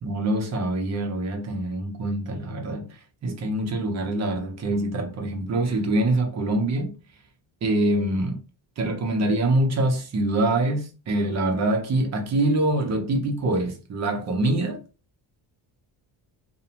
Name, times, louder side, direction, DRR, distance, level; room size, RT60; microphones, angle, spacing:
voice 1, 0.0-6.9 7.6-8.4 8.8-14.8, right 1 dB, 35° right, 0.5 m, -25 dB
2.4 x 2.1 x 2.8 m
cardioid pair, 170°, 47 cm